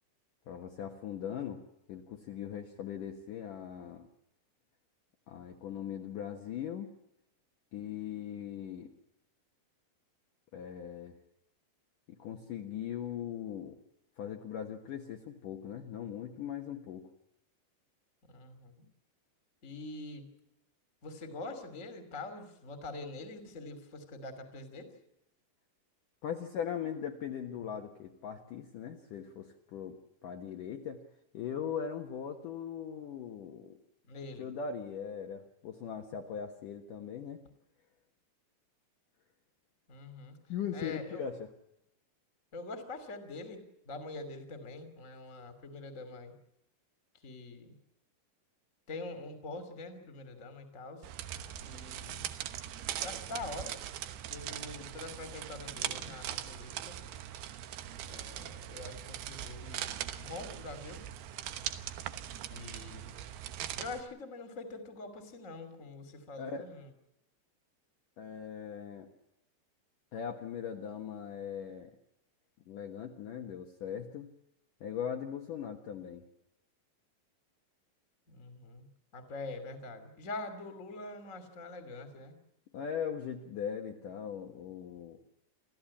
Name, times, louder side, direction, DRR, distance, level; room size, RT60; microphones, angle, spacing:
voice 1, 0.5-1.6 1.9-4.1 5.3-6.9 7.7-8.9 10.5-11.2 12.1-13.8 14.2-17.1 26.2-31.0 31.3-33.8 34.4-37.4 40.5-41.5 66.4-66.7 68.2-69.1 70.1-71.9 72.7-74.3 74.8-76.3 82.7-85.2, left 8 dB, 60° left, 3 dB, 2.5 m, -40 dB
voice 2, 18.3-18.7 19.6-20.2 21.0-24.9 34.1-34.5 39.9-40.4 40.7-41.2 42.5-46.3 47.2-47.7 48.9-51.1 51.5-52.3 53.0-53.8 54.3-57.0 58.0-61.0 62.5-63.1 63.8-66.9 78.3-78.9 79.1-82.3, left 2 dB, 20° left, 9 dB, 2.5 m, -44 dB
sound 1, 51.0-64.0, right 11 dB, 70° right, 2.8 m, -41 dB
27.5 x 15.0 x 8.6 m, 0.84 s
omnidirectional pair, 5.2 m